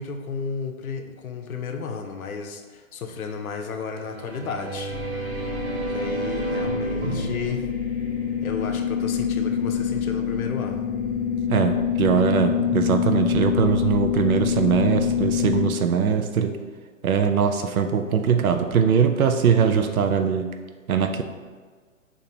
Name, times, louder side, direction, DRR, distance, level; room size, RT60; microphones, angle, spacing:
voice 1, 0.0-5.0 5.9-7.7 8.4-10.9, left 5 dB, 80° left, 5 dB, 0.7 m, -33 dB
sound 1, 3.9-8.7, right 2 dB, 65° right, 1.2 m, -33 dB
sound 2, 4.9-15.7, left 7 dB, 20° left, 0.5 m, -26 dB
voice 2, 11.5-16.5 17.0-20.5 20.9-21.2, right 7 dB, 85° right, 7 dB, 0.6 m, -21 dB
5.3 x 2.8 x 2.8 m, 1.5 s
hypercardioid pair, 135°, 42 cm